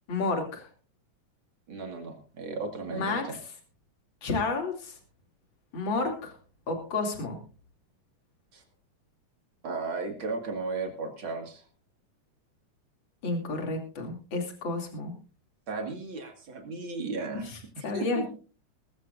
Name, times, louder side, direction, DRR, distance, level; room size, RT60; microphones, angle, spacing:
voice 1, 0.1-0.7 2.9-3.4 4.2-5.0 5.7-6.3 6.7-7.4 13.2-15.1 17.4-18.3, left 3 dB, 35° left, 3 dB, 3.2 m, -31 dB
voice 2, 1.7-3.4 8.5-8.6 9.6-11.6 15.7-17.5 17.8-18.3, right 3 dB, 40° right, 5 dB, 2.4 m, -35 dB
20.0 x 14.5 x 2.6 m, 0.35 s
omnidirectional pair, 3.8 m